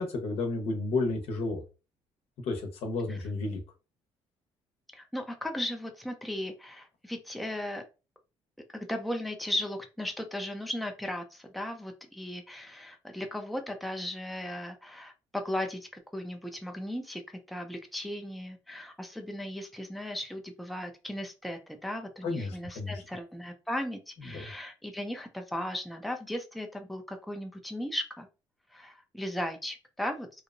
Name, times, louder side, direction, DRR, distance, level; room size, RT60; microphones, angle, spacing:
voice 1, 0.0-1.6 2.4-3.6 22.2-22.9 24.3-24.5, left 3 dB, 75° left, 3 dB, 0.8 m, -32 dB
voice 2, 4.9-7.8 8.7-28.3 28.7-30.4, left 1 dB, ahead, 4 dB, 0.5 m, -36 dB
2.9 x 2.0 x 2.5 m, 0.31 s
cardioid pair, 90°, 11 cm